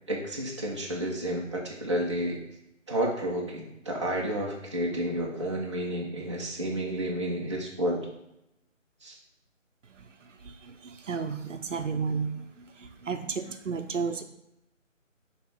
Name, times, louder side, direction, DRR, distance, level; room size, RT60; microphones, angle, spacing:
voice 1, 0.1-2.4 2.9-8.0 9.0-9.2, right 1 dB, 25° right, -4 dB, 0.6 m, -31 dB
voice 2, 9.8-14.2, right 5 dB, 65° right, 7 dB, 0.7 m, -33 dB
6.5 x 3.2 x 4.8 m, 0.84 s
figure-of-eight pair, 160°, 39 cm